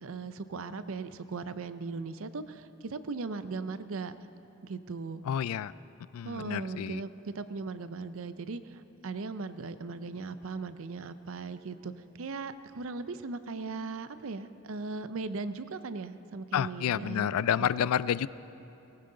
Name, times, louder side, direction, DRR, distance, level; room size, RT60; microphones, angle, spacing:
voice 1, 0.0-4.1 4.6-5.2 6.2-11.9 12.2-17.9, right 4 dB, 70° right, 12 dB, 0.5 m, -38 dB
voice 2, 5.3-5.7 6.1-7.0 16.5-18.3, left 9 dB, 85° left, 18 dB, 0.3 m, -29 dB
18.5 x 16.0 x 3.9 m, 3.0 s
head